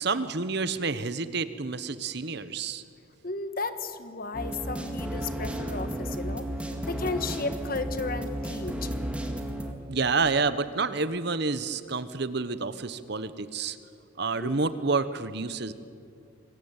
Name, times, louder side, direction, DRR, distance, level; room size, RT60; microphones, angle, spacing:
voice 1, 0.0-2.8 9.9-13.8 14.2-15.7, right 4 dB, 50° right, 13 dB, 1.0 m, -29 dB
voice 2, 3.2-8.9 14.4-14.6, left 3 dB, 45° left, 10 dB, 1.5 m, -34 dB
sound 1, 4.3-9.7, right 1 dB, 5° right, 1.9 m, -33 dB
26.0 x 22.0 x 8.9 m, 2.4 s
head